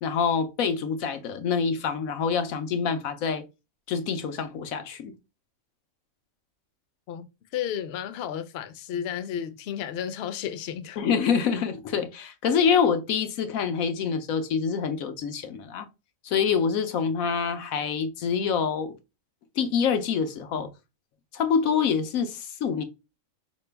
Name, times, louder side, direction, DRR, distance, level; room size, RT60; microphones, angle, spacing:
voice 1, 0.0-3.4 3.9-5.1 11.0-15.9 16.2-19.0 19.6-20.7 21.3-22.8, left 6 dB, 85° left, 1.1 m, -26 dB
voice 2, 7.5-11.0, left 9 dB, 60° left, 0.8 m, -32 dB
4.7 x 3.0 x 3.3 m
omnidirectional pair, 1.4 m